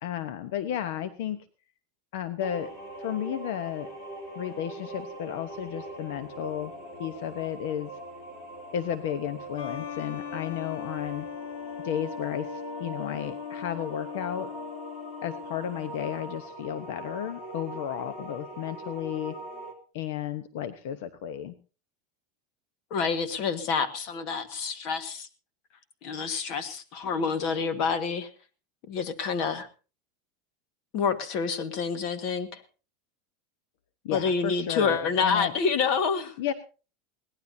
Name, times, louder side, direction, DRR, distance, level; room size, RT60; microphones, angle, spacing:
voice 1, 0.0-1.4 2.1-2.7 3.0-3.9 4.3-6.7 7.0-7.9 8.7-11.3 11.8-14.5 15.2-19.3 19.9-21.6 34.0-35.5 36.4-36.5, left 10 dB, 60° left, 11 dB, 1.0 m, -33 dB
sound 1, 2.4-19.7, right 2 dB, 20° left, 3.3 m, -42 dB
sound 2, 9.6-15.9, left 8 dB, 90° left, 1.6 m, -39 dB
voice 2, 22.9-25.3 26.0-28.3 28.9-29.7 30.9-32.6 34.1-36.3, left 5 dB, 40° left, 10 dB, 1.6 m, -28 dB
22.0 x 17.5 x 2.8 m, 0.35 s
supercardioid pair, 170°, 0 cm